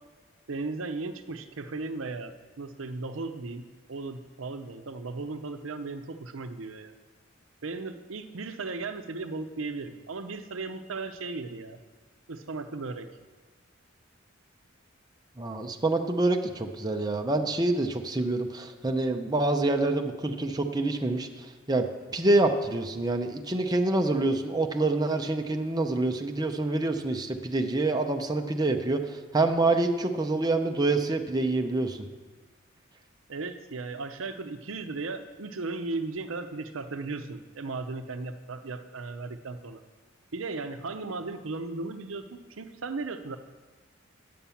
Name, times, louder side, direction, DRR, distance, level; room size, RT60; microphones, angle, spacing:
voice 1, 0.5-3.6 3.9-6.9 7.6-11.8 12.3-13.1 33.3-39.8 40.3-43.4, right 3 dB, 80° right, 9 dB, 0.7 m, -36 dB
voice 2, 15.4-21.8 22.1-32.0, right 2 dB, 20° right, 4 dB, 0.7 m, -26 dB
9.3 x 7.3 x 7.0 m, 1.3 s
head